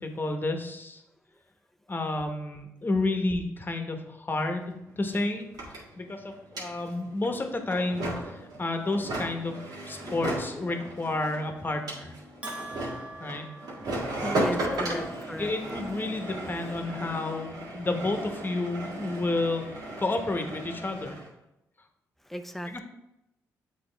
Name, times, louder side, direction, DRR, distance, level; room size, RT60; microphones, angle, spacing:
voice 1, 0.0-1.0 1.9-5.5 6.0-9.5 9.9-12.1 13.2-13.5 14.6-15.1 15.4-21.2 22.7-22.8, left 2 dB, 30° left, 5 dB, 1.1 m, -31 dB
sound 1, 4.4-4.5 4.7-21.3, right 1 dB, 70° right, 2.0 m, -36 dB
Bell, 12.4-14.6, right 2 dB, 15° right, 0.9 m, -43 dB
voice 2, 14.2-15.5 22.3-22.8, equal, 5° left, 8 dB, 0.5 m, -35 dB
7.8 x 3.5 x 3.4 m, 0.88 s
supercardioid pair, 55°, 7 cm